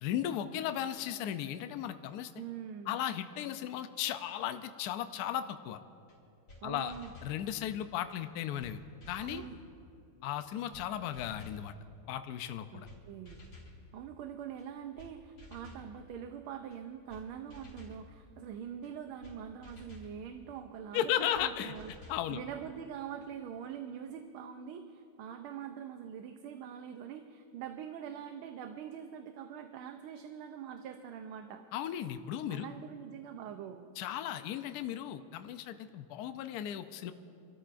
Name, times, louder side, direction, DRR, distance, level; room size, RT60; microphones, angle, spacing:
voice 1, 0.0-2.3 2.9-5.8 6.6-6.9 7.2-8.8 9.1-9.4 10.2-11.7 12.1-12.9 20.9-21.7 22.1-22.4 31.7-32.7 34.0-37.1, left 11 dB, 85° left, 9 dB, 0.8 m, -36 dB
voice 2, 2.3-3.0 6.6-7.1 9.2-9.6 12.7-13.4 13.9-21.9 22.3-31.6 32.5-33.9, right 8 dB, 90° right, 6 dB, 1.5 m, -44 dB
sound 1, 6.1-6.2 6.5-6.6 6.9-7.4 8.2-8.3 8.6-8.7 9.0-9.5 10.3-10.4 10.7-10.9 11.1-11.6 12.5-12.6 12.8-13.0 13.3-13.7 14.6-14.7 15.0-15.1 15.4-15.9 16.7-16.8 17.1-17.2 17.5-18.0 18.8-18.9 19.2-19.4 19.6-20.1 21.0-21.1 21.3-21.5 21.7-22.2, left 1 dB, 50° left, 3.9 m, -52 dB
29.5 x 13.0 x 2.5 m, 2.6 s
omnidirectional pair, 2.3 m